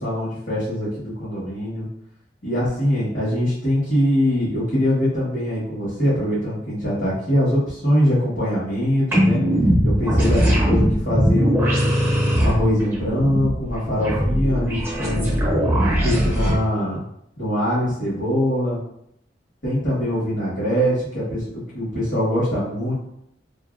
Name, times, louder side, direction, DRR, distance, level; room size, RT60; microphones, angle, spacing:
voice 1, 0.0-1.8 2.4-9.4 9.8-12.0 12.4-15.4 16.0-17.0 17.4-18.8 19.6-21.4 21.7-22.9, equal, 75° left, -11 dB, 1.4 m, -22 dB
sound 1, 9.1-16.5, equal, 10° right, 0.7 m, -20 dB
2.7 x 2.6 x 2.4 m, 0.75 s
head